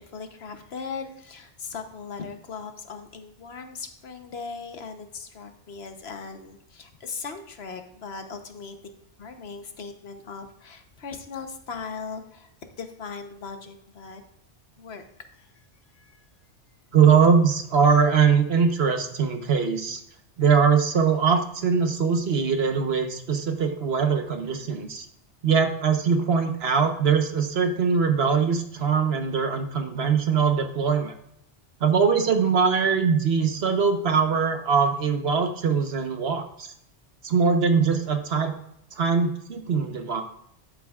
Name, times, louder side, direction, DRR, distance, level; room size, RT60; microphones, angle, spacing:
voice 1, 0.0-8.8 9.2-12.5 12.8-14.2 14.8-15.0 15.4-15.5 15.9-16.2, left 5 dB, 65° left, 7 dB, 1.2 m, -38 dB
voice 2, 16.9-20.0 20.4-25.1 25.4-31.1 31.8-36.7 37.2-38.5 39.0-40.2, right 6 dB, 65° right, 6 dB, 1.2 m, -22 dB
12.0 x 7.8 x 2.4 m, 0.74 s
omnidirectional pair, 1.2 m